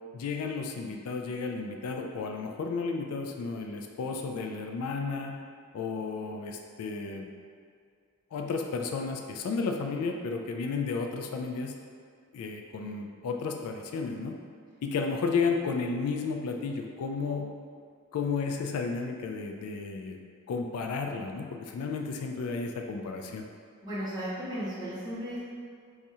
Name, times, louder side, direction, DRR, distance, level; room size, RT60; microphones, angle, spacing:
voice 1, 0.1-5.4 5.7-7.3 8.3-11.7 12.3-14.3 14.8-17.5 18.1-20.2 20.5-23.4, left 4 dB, 70° left, 5 dB, 0.3 m, -33 dB
voice 2, 23.8-25.4, equal, 20° right, -11 dB, 1.1 m, -35 dB
2.7 x 2.4 x 4.2 m, 2.2 s
head